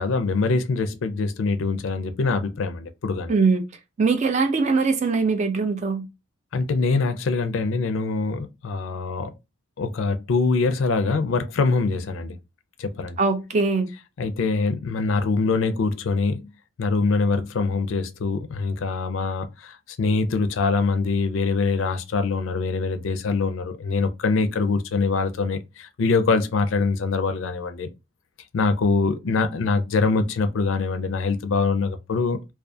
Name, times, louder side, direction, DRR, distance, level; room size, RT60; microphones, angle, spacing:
voice 1, 0.0-3.4 6.5-9.3 9.8-12.4 12.8-13.2 14.2-16.5 16.8-27.9 28.5-32.4, left 4 dB, 70° left, 0.4 m, -24 dB
voice 2, 3.3-3.6 4.0-6.1 13.2-13.9, right 4 dB, 35° right, 0.4 m, -21 dB
2.4 x 2.3 x 2.6 m
head